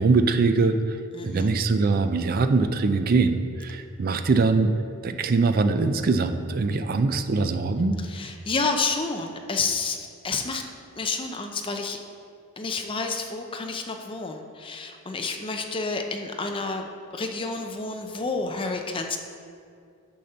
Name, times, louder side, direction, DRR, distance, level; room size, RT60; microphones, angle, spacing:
voice 1, 0.0-4.7 5.0-8.0, right 3 dB, 45° right, 8 dB, 0.4 m, -22 dB
voice 2, 1.1-1.5 8.1-10.6 11.0-12.0 12.6-16.8 17.1-19.2, left 4 dB, 25° left, 4 dB, 0.6 m, -29 dB
8.5 x 4.3 x 6.7 m, 2.3 s
head